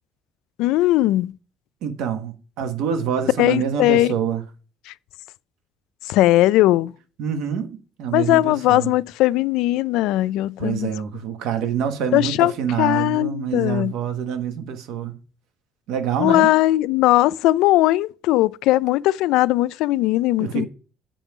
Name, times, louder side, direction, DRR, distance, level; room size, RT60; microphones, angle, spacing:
voice 1, 0.6-1.3 3.4-4.1 4.9-5.0 6.1-6.9 8.1-10.9 12.1-12.5 12.8-13.9 16.2-20.7, left 16 dB, 85° left, 0.3 m, -19 dB
voice 2, 1.8-4.4 7.2-8.9 10.6-15.2 15.9-16.5 20.4-20.7, right 8 dB, 80° right, 1.2 m, -26 dB
7.3 x 5.4 x 5.9 m
cardioid pair, 130°, 0 cm